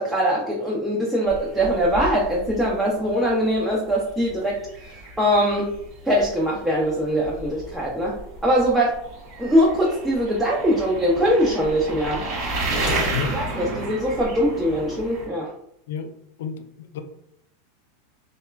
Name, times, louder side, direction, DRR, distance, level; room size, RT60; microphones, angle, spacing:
voice 1, 0.0-4.6 4.9-5.7 6.0-8.2 8.4-8.9 9.4-12.2 13.3-15.5, equal, 10° right, 0.6 m, -22 dB
sound 1, 1.3-15.3, right 2 dB, 50° right, 1.1 m, -32 dB
voice 2, 16.4-17.0, left 6 dB, 70° left, 0.3 m, -30 dB
2.8 x 2.2 x 2.2 m
hypercardioid pair, 95°, 0 cm